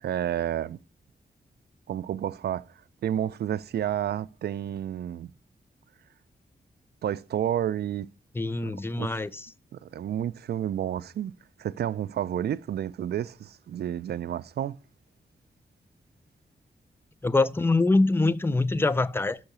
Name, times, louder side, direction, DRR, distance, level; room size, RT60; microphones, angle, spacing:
voice 1, 0.0-0.8 1.9-2.7 3.0-5.3 7.0-8.1 8.6-8.7 9.0-9.2 9.7-11.3 11.6-14.8, right 10 dB, 75° right, 0.4 m, -30 dB
voice 2, 8.3-9.5 17.2-19.4, left 2 dB, 15° left, 0.5 m, -24 dB
6.3 x 5.8 x 6.7 m
cardioid pair, 80°, 17 cm